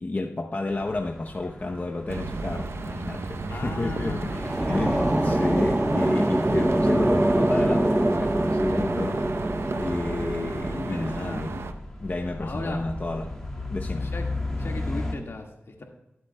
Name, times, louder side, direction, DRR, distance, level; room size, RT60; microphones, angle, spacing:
voice 1, 0.0-9.4 9.7-11.7 12.0-13.3 13.7-14.1, left 2 dB, 40° left, 1 dB, 0.8 m, -31 dB
sound 1, 0.7-15.1, left 2 dB, 10° left, 2.0 m, -37 dB
sound 2, 2.1-11.7, right 3 dB, 80° right, 0.7 m, -33 dB
voice 2, 3.5-5.3 10.7-11.6 12.4-12.8 14.0-14.3 14.6-15.8, left 2 dB, 70° left, 2 dB, 1.8 m, -37 dB
sound 3, 4.0-11.2, right 1 dB, 15° right, 0.7 m, -25 dB
20.5 x 7.8 x 2.2 m, 0.93 s
wide cardioid pair, 75°, 4 cm